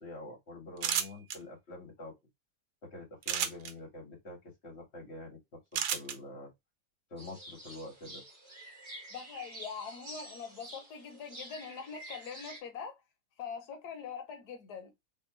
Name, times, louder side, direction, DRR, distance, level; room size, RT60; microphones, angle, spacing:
voice 1, 0.0-2.1 2.8-4.4 4.6-6.5 7.1-8.2, left 2 dB, 45° left, 1.9 m, -46 dB
sound 1, 0.8-1.4 3.2-3.7 5.7-6.2, right 8 dB, 85° right, 1.2 m, -31 dB
sound 2, 7.2-12.6, right 1 dB, 30° right, 1.8 m, -48 dB
voice 2, 9.1-13.0 13.4-14.9, left 6 dB, 85° left, 1.3 m, -43 dB
3.5 x 3.3 x 3.0 m
omnidirectional pair, 1.6 m